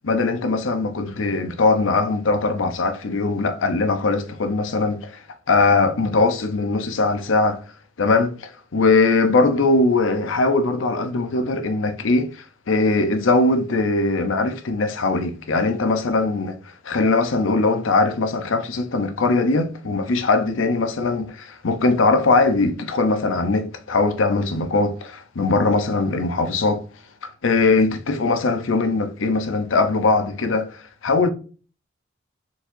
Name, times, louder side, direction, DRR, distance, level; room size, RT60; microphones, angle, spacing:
voice 1, 0.0-5.2 5.5-7.6 8.0-16.6 16.8-26.8 27.2-31.3, left 3 dB, 85° left, 0.6 m, -20 dB
4.6 x 4.2 x 2.6 m
head